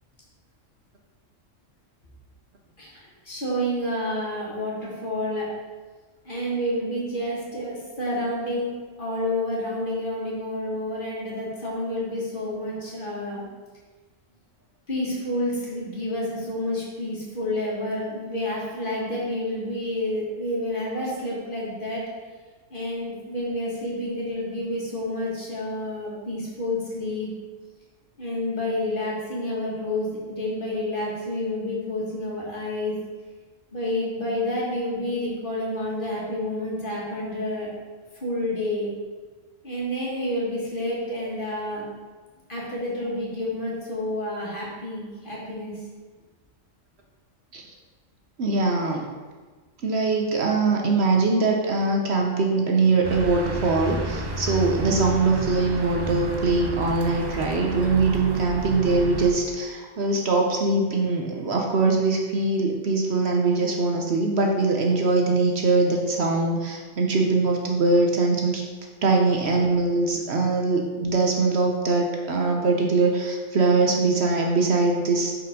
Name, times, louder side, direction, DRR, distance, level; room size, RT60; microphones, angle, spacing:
voice 1, 2.8-5.5 6.3-8.7 9.0-13.4 14.9-22.0 22.7-27.3 28.2-32.9 33.7-37.7 38.2-38.9 39.6-41.8 42.5-45.7, left 1 dB, 40° left, -5 dB, 1.9 m, -29 dB
voice 2, 48.4-49.0 49.8-68.6 69.0-75.3, right 3 dB, 60° right, 1 dB, 1.0 m, -22 dB
lloyd center again, 53.0-59.3, right 2 dB, 30° right, 0.5 m, -31 dB
5.9 x 5.1 x 5.1 m, 1.4 s
omnidirectional pair, 1.3 m